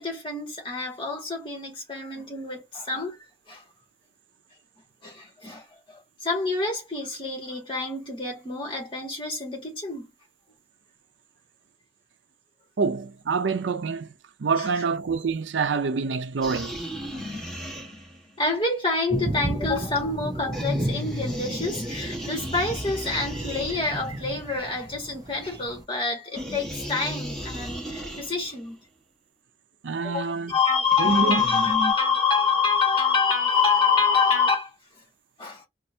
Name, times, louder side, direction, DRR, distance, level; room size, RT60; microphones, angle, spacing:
voice 1, 0.0-3.2 3.5-3.6 5.0-10.1 14.6-14.7 18.4-28.8 30.0-34.7 35.4-35.7, left 4 dB, 30° left, 1.8 m, -26 dB
voice 2, 12.8-16.8 29.8-30.5 31.0-31.4, right 4 dB, 90° right, 0.5 m, -26 dB
sound 1, 16.4-18.3 20.5-24.2 26.4-28.6 30.9-31.9, left 1 dB, 5° left, 1.3 m, -34 dB
sound 2, 19.1-25.8, right 1 dB, 20° right, 0.4 m, -34 dB
4.3 x 2.5 x 2.7 m
head